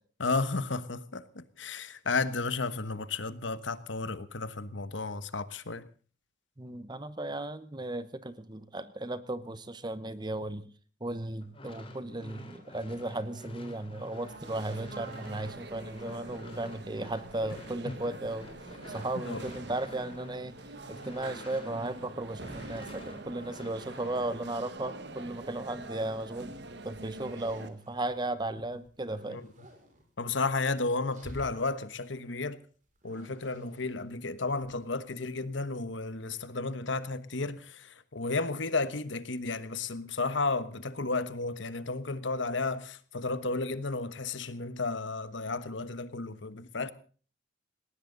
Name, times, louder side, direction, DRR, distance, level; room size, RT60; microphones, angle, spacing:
voice 1, 0.2-5.9 17.9-18.0 19.3-19.4 29.3-29.4 30.2-32.6 33.0-46.9, left 3 dB, 70° left, 1.2 m, -33 dB
voice 2, 6.6-10.7 11.0-18.5 18.9-20.6 20.9-26.6 26.8-29.4, right 2 dB, 20° right, 1.0 m, -36 dB
sound 1, 11.4-22.1 22.4-24.3, left 1 dB, 30° left, 3.0 m, -48 dB
sound 2, 14.1-27.7, right 2 dB, 60° right, 1.5 m, -45 dB
sound 3, 26.9-28.2 28.6-30.0 30.9-31.9 32.9-35.0, equal, 40° right, 5.9 m, -51 dB
19.5 x 18.5 x 4.0 m
head